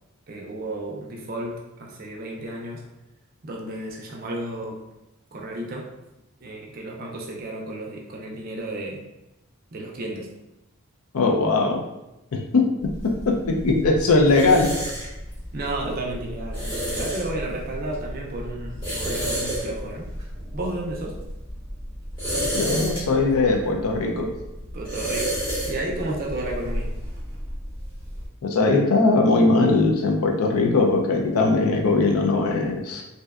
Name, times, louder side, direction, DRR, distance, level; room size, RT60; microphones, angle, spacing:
voice 1, 0.3-2.8 3.4-4.8 5.3-5.9 6.4-9.0 9.7-10.4 15.5-20.1 20.5-21.2 24.7-26.9, right 1 dB, 40° right, -1 dB, 0.4 m, -32 dB
voice 2, 11.1-11.8 12.5-12.7 13.0-14.7 22.5-24.3 28.4-33.0, left 3 dB, 80° left, 2 dB, 0.4 m, -20 dB
sound 1, 12.8-28.3, right 1 dB, 20° left, 0.9 m, -31 dB
2.6 x 2.2 x 2.3 m, 0.94 s
head